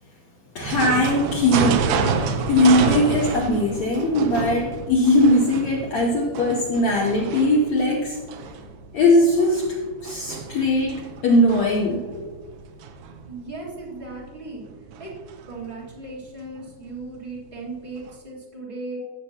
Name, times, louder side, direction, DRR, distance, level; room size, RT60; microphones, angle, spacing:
voice 1, 0.5-8.2 8.9-12.0, left 1 dB, 80° left, -1 dB, 1.5 m, -20 dB
sound 1, 0.6-16.0 16.5-16.6 16.9-17.0 17.3-17.4 18.1-18.2, right 5 dB, 75° right, 2.3 m, -30 dB
voice 2, 13.3-14.7 15.0-15.1 15.4-19.0, right 3 dB, 55° right, -5 dB, 0.5 m, -36 dB
15.5 x 6.9 x 2.8 m, 1.3 s
omnidirectional pair, 4.4 m